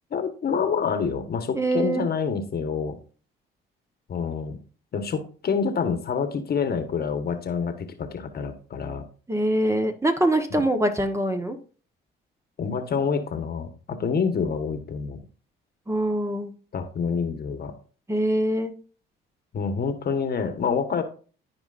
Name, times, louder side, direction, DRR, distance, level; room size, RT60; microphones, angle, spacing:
voice 1, 0.1-3.0 4.1-4.6 4.9-9.0 10.5-10.6 12.6-15.2 16.7-17.7 19.5-21.0, left 6 dB, 50° left, 7 dB, 1.4 m, -27 dB
voice 2, 1.5-2.1 9.3-11.6 15.9-16.5 18.1-18.7, right 1 dB, 15° right, 6 dB, 1.2 m, -24 dB
13.5 x 4.9 x 2.6 m, 0.39 s
cardioid pair, 80°, 21 cm